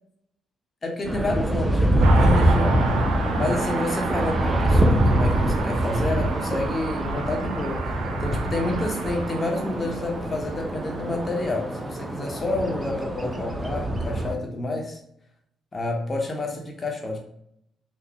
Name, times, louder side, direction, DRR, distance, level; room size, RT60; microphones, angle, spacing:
voice 1, 0.8-2.8 3.4-15.0 15.7-17.2, left 2 dB, 35° left, 1 dB, 0.9 m, -29 dB
sound 1, 1.0-14.3, right 1 dB, 25° right, 0.6 m, -24 dB
Car passing by, 2.0-12.0 12.2-12.3, right 4 dB, 85° right, 0.5 m, -32 dB
3.5 x 2.1 x 3.4 m, 0.71 s
supercardioid pair, 50°, 0 cm